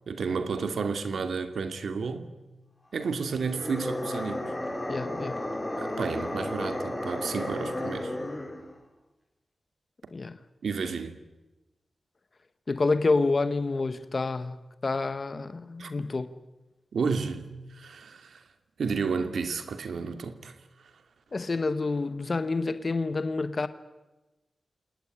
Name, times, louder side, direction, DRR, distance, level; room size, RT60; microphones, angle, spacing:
voice 1, 0.1-2.3 2.9-4.5 5.8-8.1 10.6-11.2 15.8-15.9 16.9-18.4 18.8-20.5, right 5 dB, 85° right, 2.4 m, -31 dB
sound 1, 3.3-8.7, left 1 dB, 15° left, 4.1 m, -33 dB
voice 2, 4.9-5.4 10.1-10.4 12.7-16.3 21.3-23.7, left 3 dB, 35° left, 1.2 m, -28 dB
28.5 x 19.0 x 10.0 m
wide cardioid pair, 175°, 0 cm